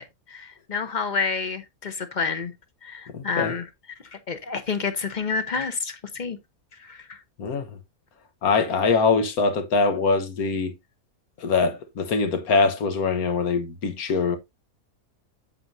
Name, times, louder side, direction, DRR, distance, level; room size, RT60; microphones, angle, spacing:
voice 1, 0.0-2.5 2.8-3.7 4.1-6.4 6.8-7.2, left 5 dB, 35° left, 0.9 m, -29 dB
voice 2, 3.1-3.5 7.4-7.7 8.4-10.7 11.4-14.4, left 4 dB, 80° left, 1.6 m, -23 dB
8.2 x 7.3 x 2.6 m
omnidirectional pair, 1.5 m